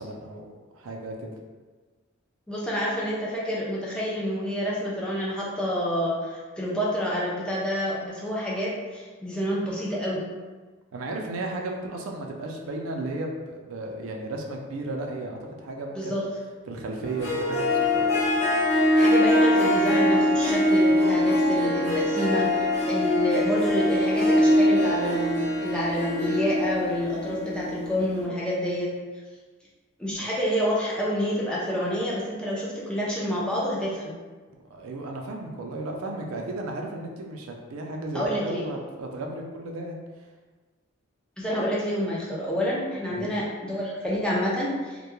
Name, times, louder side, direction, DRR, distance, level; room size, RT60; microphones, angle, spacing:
voice 1, 0.0-1.3 10.9-16.2 16.7-18.2 34.5-40.0 43.1-43.4, right 2 dB, 85° right, 2 dB, 0.4 m, -34 dB
voice 2, 2.5-10.2 15.9-16.2 18.9-28.9 30.0-34.1 38.1-38.6 41.4-45.0, equal, 5° left, -6 dB, 0.4 m, -28 dB
Harp, 17.0-28.2, left 1 dB, 30° left, 0.8 m, -23 dB
2.2 x 2.1 x 2.9 m, 1.4 s
head